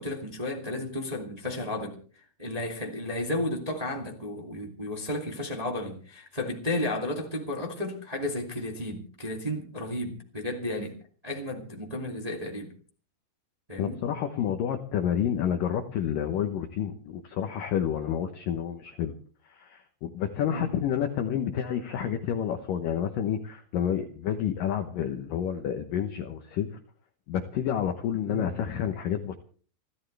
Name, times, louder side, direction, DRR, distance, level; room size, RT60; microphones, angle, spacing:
voice 1, 0.0-2.0 2.4-10.9 11.2-12.7 13.7-14.0 20.5-20.7 28.3-28.5, left 1 dB, 15° right, 1.6 m, -33 dB
voice 2, 13.8-19.1 19.5-26.8 27.3-29.4, left 9 dB, 75° left, 2.1 m, -29 dB
29.5 x 13.5 x 3.4 m
omnidirectional pair, 5.2 m